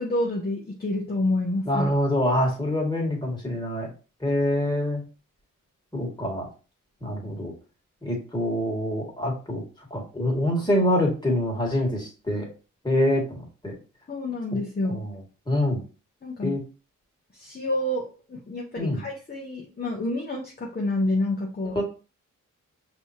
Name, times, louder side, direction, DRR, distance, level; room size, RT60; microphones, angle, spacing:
voice 1, 0.0-1.9 14.1-15.0 16.2-16.6 17.3-21.8, left 1 dB, 30° left, -2 dB, 1.0 m, -28 dB
voice 2, 1.7-3.9 4.2-5.0 5.9-6.5 7.0-7.5 8.0-9.6 9.9-12.5 12.8-13.8 14.9-15.1 15.5-15.8 16.4-16.6 18.8-19.0 21.8-21.9, left 1 dB, 15° left, -2 dB, 2.1 m, -25 dB
5.4 x 3.0 x 2.9 m, 0.34 s
cardioid pair, 60°, 33 cm